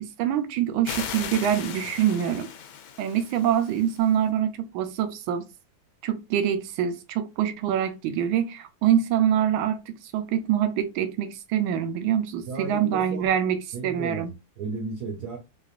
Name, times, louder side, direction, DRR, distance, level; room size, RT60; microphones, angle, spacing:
voice 1, 0.0-2.5 3.0-5.5 6.0-14.3, right 9 dB, 75° right, 1.4 m, -25 dB
sound 1, 0.8-4.2, left 8 dB, 75° left, 1.4 m, -37 dB
voice 2, 12.5-13.3 13.7-15.4, right 3 dB, 60° right, 1.2 m, -34 dB
4.7 x 2.5 x 2.4 m
omnidirectional pair, 2.4 m